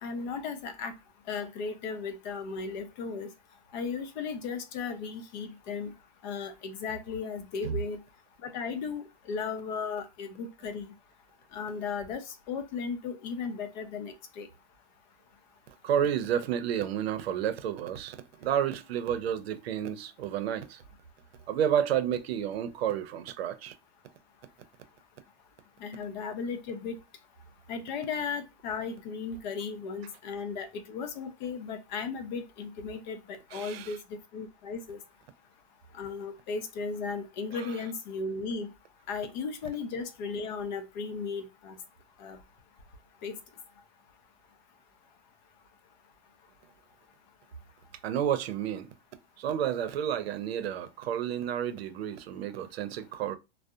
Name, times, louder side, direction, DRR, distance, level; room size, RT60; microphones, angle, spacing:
voice 1, 0.0-0.9 1.3-3.3 3.7-5.9 6.2-8.0 8.4-10.9 11.5-14.5 25.8-27.0 27.7-34.0 34.3-35.0 35.9-38.7 39.1-41.8 42.2-42.4 43.2-43.3, left 5 dB, 50° left, 0.6 m, -36 dB
voice 2, 15.8-20.8 21.5-23.7 33.5-33.9 37.5-37.7 48.0-48.9 49.4-53.4, right 9 dB, 90° right, 0.6 m, -30 dB
2.6 x 2.0 x 2.3 m
supercardioid pair, 160°, 30 cm